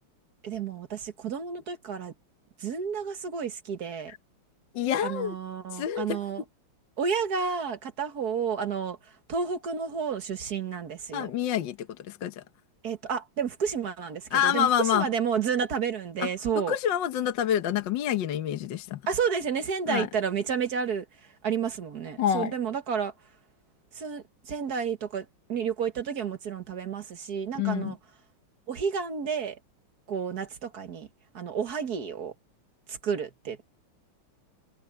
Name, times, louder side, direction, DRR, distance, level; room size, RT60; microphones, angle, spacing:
voice 1, 0.4-2.1 2.6-4.1 5.0-6.4 7.0-9.0 9.3-11.3 12.8-16.8 19.1-23.1 23.9-28.0 28.7-29.6 30.1-31.1 31.3-32.3 32.9-33.8, right 6 dB, 50° right, 1.7 m, -31 dB
voice 2, 4.7-5.4 5.7-6.2 11.1-12.4 14.3-15.1 16.2-16.3 16.7-19.0 19.9-20.1 22.2-22.5 27.6-27.9, left 10 dB, 60° left, 1.6 m, -27 dB
omnidirectional pair, 2.4 m